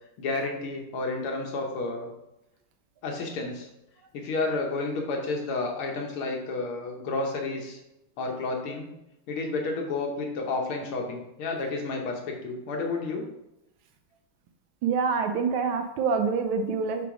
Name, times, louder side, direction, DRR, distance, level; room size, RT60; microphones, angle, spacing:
voice 1, 0.2-2.1 3.0-3.7 4.1-7.8 8.2-8.9 9.3-13.3, left 3 dB, 85° left, 1 dB, 2.0 m, -31 dB
voice 2, 14.8-17.1, right 5 dB, 75° right, 6 dB, 1.5 m, -26 dB
6.8 x 3.4 x 4.9 m, 0.88 s
omnidirectional pair, 2.3 m